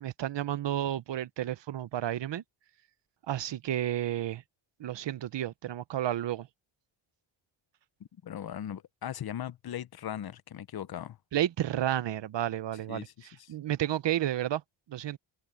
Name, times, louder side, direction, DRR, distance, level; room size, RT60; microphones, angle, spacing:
voice 1, 0.0-2.4 3.3-4.4 4.8-6.5 11.3-14.6 14.9-15.2, right 12 dB, 60° right, 0.9 m, -31 dB
voice 2, 8.2-11.2 12.9-13.1 13.4-13.5, left 10 dB, 50° left, 0.8 m, -38 dB
wide cardioid pair, 140°, 49 cm